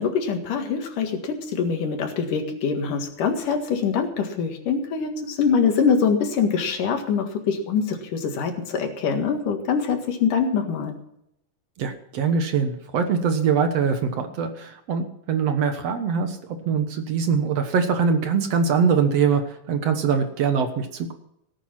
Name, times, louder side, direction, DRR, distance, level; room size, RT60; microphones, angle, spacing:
voice 1, 0.0-10.9, left 6 dB, 85° left, 5 dB, 3.4 m, -24 dB
voice 2, 11.8-16.4 16.7-21.1, right 6 dB, 60° right, 7 dB, 2.0 m, -23 dB
18.0 x 9.1 x 5.9 m, 0.77 s
omnidirectional pair, 3.6 m